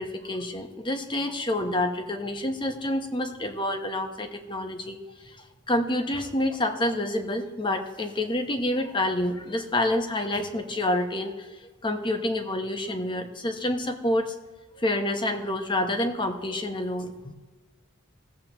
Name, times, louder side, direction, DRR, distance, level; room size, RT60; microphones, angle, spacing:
voice 1, 0.0-5.0 5.2-5.4 5.7-14.3 14.8-17.3, left 1 dB, 20° left, 5 dB, 0.9 m, -28 dB
17.5 x 7.6 x 2.9 m, 1.3 s
head